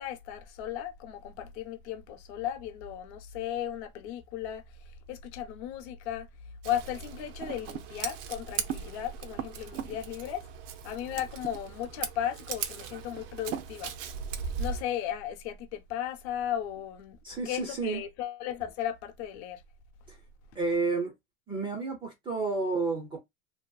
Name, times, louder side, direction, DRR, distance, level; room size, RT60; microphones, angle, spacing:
voice 1, 0.0-6.3 6.6-10.4 10.8-13.9 14.6-17.2 17.5-19.6, left 10 dB, 60° left, 0.7 m, -36 dB
Scissors, 6.6-14.8, right 7 dB, 80° right, 0.6 m, -38 dB
voice 2, 17.2-18.0 20.1-20.2 20.6-21.1 21.5-23.2, right 4 dB, 15° right, 0.3 m, -30 dB
2.6 x 2.5 x 2.2 m
supercardioid pair, 150°, 38 cm